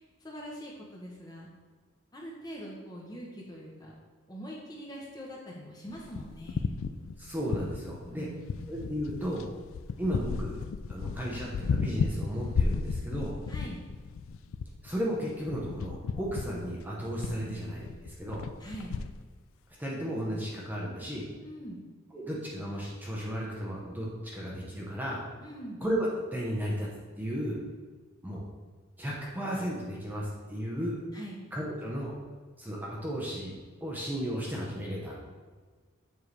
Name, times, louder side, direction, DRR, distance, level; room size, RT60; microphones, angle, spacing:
voice 1, 0.0-1.5 2.1-3.9 4.3-6.7 8.1-8.7 13.5-13.8 18.6-18.9 21.4-21.8 25.4-25.8 31.1-31.4, equal, 20° left, -2 dB, 0.9 m, -43 dB
sound 1, 5.9-8.1 8.5-19.2, left 5 dB, 80° left, 0.3 m, -34 dB
voice 2, 7.2-8.3 8.7-9.5 10.0-10.6 10.9-13.4 14.8-18.4 19.8-21.3 22.1-25.2 25.8-26.9 27.2-27.6 28.2-28.4 29.0-31.0 31.5-32.1 32.6-35.2, equal, 10° right, -4 dB, 0.8 m, -34 dB
7.2 x 4.6 x 3.3 m, 1.4 s
head